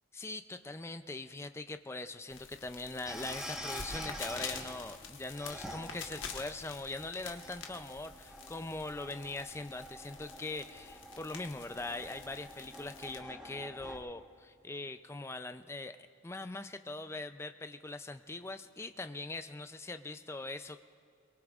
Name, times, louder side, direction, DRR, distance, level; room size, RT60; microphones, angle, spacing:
voice 1, 0.1-16.0 16.2-20.8, left 2 dB, 15° left, 9 dB, 0.4 m, -42 dB
sound 1, 2.3-13.2, left 6 dB, 70° left, 1.3 m, -47 dB
sound 2, 3.1-14.0, equal, 5° right, 1.1 m, -47 dB
23.0 x 22.5 x 2.4 m, 2.4 s
head